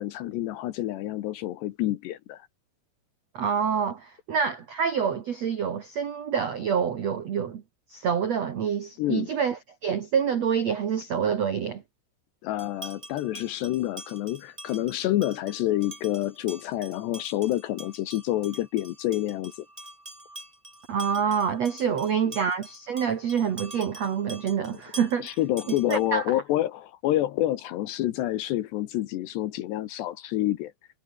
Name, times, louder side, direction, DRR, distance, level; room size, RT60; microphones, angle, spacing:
voice 1, 0.0-2.5 9.0-9.3 12.4-19.5 22.3-22.4 24.7-24.8 25.2-30.7, left 14 dB, 75° left, 2.8 m, -28 dB
voice 2, 3.3-7.6 7.9-11.8 20.9-25.4 25.7-26.2, right 7 dB, 90° right, 1.4 m, -27 dB
sound 1, 12.6-26.3, right 1 dB, 5° right, 6.5 m, -46 dB
omnidirectional pair, 5.8 m